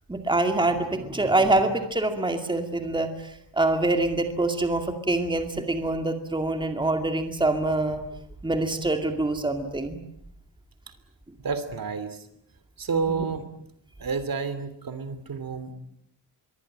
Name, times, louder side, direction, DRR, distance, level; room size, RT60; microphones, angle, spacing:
voice 1, 0.1-8.0 8.4-10.0 13.1-13.2, right 2 dB, 10° right, 6 dB, 2.3 m, -25 dB
voice 2, 11.4-12.2 12.8-13.4 14.0-15.7, right 5 dB, 50° right, 12 dB, 3.0 m, -30 dB
25.5 x 23.0 x 8.9 m, 0.69 s
wide cardioid pair, 165°, 43 cm